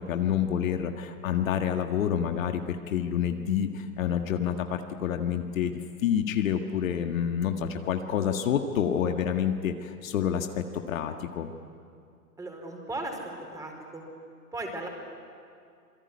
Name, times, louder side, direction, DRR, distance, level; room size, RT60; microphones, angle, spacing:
voice 1, 0.1-11.5, left 8 dB, 55° left, 5 dB, 1.9 m, -28 dB
voice 2, 12.4-13.2 13.5-14.0 14.5-14.9, right 2 dB, 5° right, 2 dB, 4.7 m, -36 dB
27.0 x 22.0 x 9.8 m, 2.3 s
hypercardioid pair, 125°, 47 cm